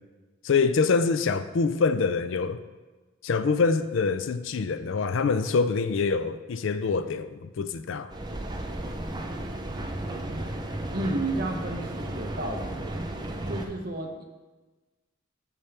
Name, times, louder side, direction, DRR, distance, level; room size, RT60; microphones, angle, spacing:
voice 1, 0.4-2.6 3.2-8.1, left 4 dB, 70° left, 0.4 m, -25 dB
Mechanical fan, 8.1-13.7, right 1 dB, 20° right, 0.5 m, -34 dB
voice 2, 10.9-12.7 13.5-14.2, right 2 dB, 45° right, 1.0 m, -31 dB
8.4 x 7.0 x 3.4 m
head